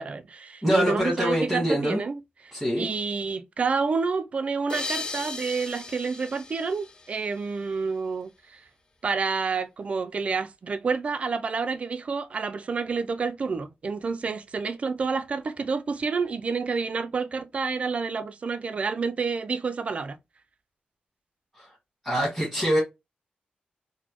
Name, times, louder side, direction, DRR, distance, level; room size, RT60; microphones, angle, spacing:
voice 1, 0.0-8.6 9.0-20.2, right 4 dB, 40° right, 0.3 m, -29 dB
voice 2, 0.6-2.0 2.5-2.9 21.5-21.8 22.0-22.8, equal, ahead, 1.3 m, -24 dB
sound 1, 4.7-7.8, left 3 dB, 25° left, 0.4 m, -37 dB
4.0 x 2.1 x 2.9 m
wide cardioid pair, 150°, 3 cm